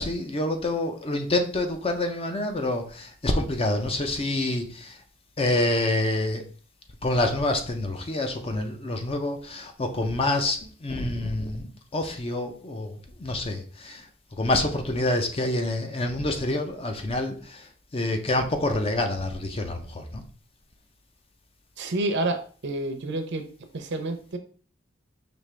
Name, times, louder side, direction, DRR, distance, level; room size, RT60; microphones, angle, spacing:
voice 1, 0.0-5.0 5.4-6.4 7.0-14.0 14.4-17.7 17.9-20.2, left 2 dB, 30° left, 0.6 m, -27 dB
voice 2, 21.8-23.4 23.7-24.4, right 2 dB, 60° right, 0.7 m, -29 dB
5.2 x 2.9 x 3.3 m
head